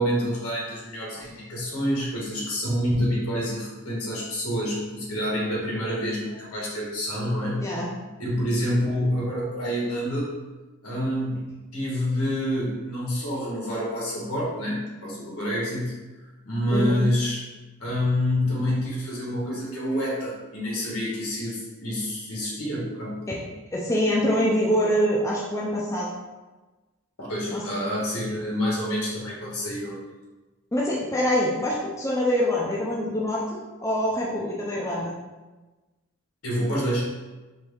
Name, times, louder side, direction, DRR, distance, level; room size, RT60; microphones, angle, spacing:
voice 1, 0.0-7.7 8.2-10.4 10.8-16.0 16.4-17.4 17.8-23.2 27.2-30.0 36.4-37.0, equal, 80° left, -5 dB, 1.5 m, -27 dB
voice 2, 16.7-17.1 23.3-23.4 23.7-26.1 27.5-27.6 30.7-35.1, equal, 15° left, -4 dB, 0.4 m, -25 dB
4.4 x 2.7 x 3.5 m, 1.2 s
head